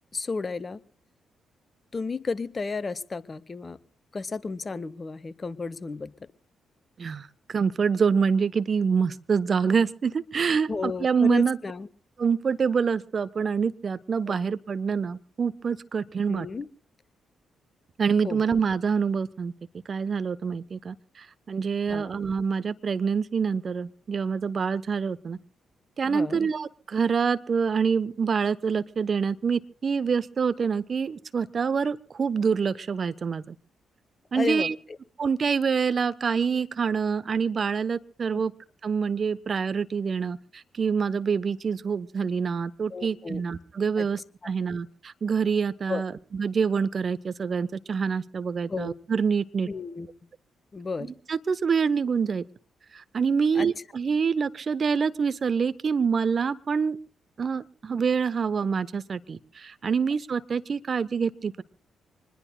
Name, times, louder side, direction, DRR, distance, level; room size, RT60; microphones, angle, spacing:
voice 1, 0.1-0.8 1.9-3.8 4.1-6.1 10.7-11.9 16.3-16.7 18.2-18.4 21.9-22.1 26.0-26.4 34.3-34.7 38.3-38.4 42.9-43.4 44.0-44.1 44.4-44.5 45.9-46.0 48.7-48.9 49.7-50.1 50.7-51.1 53.5-53.7, left 4 dB, 40° left, 17 dB, 1.3 m, -32 dB
voice 2, 7.0-11.6 12.2-16.5 18.0-19.5 19.9-25.4 26.0-33.5 34.3-34.7 35.2-38.5 38.8-49.7 51.3-52.4 52.9-57.0 57.4-61.6, right 6 dB, 50° right, 15 dB, 1.1 m, -26 dB
26.0 x 21.0 x 2.3 m, 0.41 s
hypercardioid pair, 40°, 0 cm